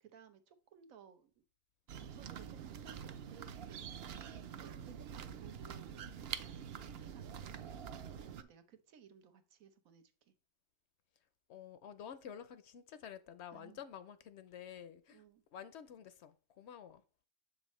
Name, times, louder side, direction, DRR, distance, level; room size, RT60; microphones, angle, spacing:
voice 1, 0.0-1.3 2.0-10.3 13.5-13.8 15.1-15.4, right 7 dB, 90° right, 1.3 m, -60 dB
sound 1, 1.9-8.4, right 8 dB, 60° right, 0.7 m, -46 dB
voice 2, 11.5-15.2 15.5-17.0, left 8 dB, 65° left, 0.8 m, -50 dB
7.4 x 5.4 x 3.1 m
omnidirectional pair, 1.4 m